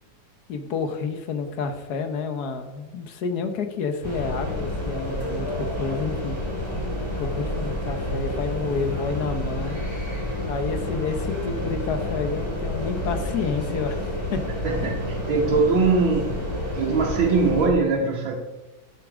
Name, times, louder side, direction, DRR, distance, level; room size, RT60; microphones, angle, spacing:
voice 1, 0.5-6.4 7.2-9.8 10.4-14.4, left 5 dB, 60° left, 8 dB, 1.3 m, -29 dB
sound 1, 4.0-17.7, left 1 dB, 15° left, 2.7 m, -29 dB
voice 2, 14.6-16.5 16.7-18.4, right 4 dB, 90° right, -2 dB, 1.9 m, -22 dB
12.0 x 6.1 x 4.9 m, 1.1 s
omnidirectional pair, 2.1 m